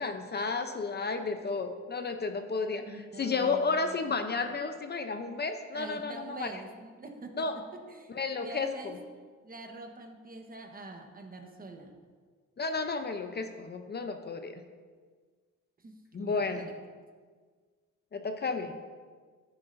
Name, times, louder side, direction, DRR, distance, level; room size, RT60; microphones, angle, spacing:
voice 1, 0.0-2.9 3.2-6.6 7.4-7.6 8.1-9.0 12.6-14.6 16.1-16.7 18.1-18.8, left 4 dB, 35° left, 6 dB, 0.7 m, -32 dB
voice 2, 2.9-3.8 5.7-8.9 9.4-12.0 15.8-16.8, right 2 dB, 30° right, 3 dB, 1.3 m, -45 dB
11.0 x 9.8 x 2.7 m, 1.5 s
cardioid pair, 90°, 30 cm